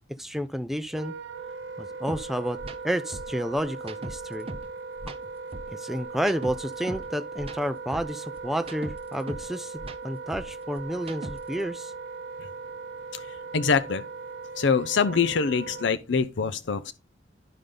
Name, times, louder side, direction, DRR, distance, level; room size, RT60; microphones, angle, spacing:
voice 1, 0.1-1.1 1.8-4.5 5.7-11.9, equal, ahead, 0.3 m, -31 dB
Wind instrument woodwind instrument, 0.9-15.9, right 4 dB, 75° right, 0.9 m, -39 dB
sound 1, 2.1-2.2 2.6-2.8 3.1-4.7 5.0-7.1 7.4-9.5 9.8-11.6, right 1 dB, 30° right, 0.7 m, -39 dB
voice 2, 13.1-14.0 14.6-16.9, left 5 dB, 70° left, 0.5 m, -25 dB
11.0 x 5.1 x 3.7 m
head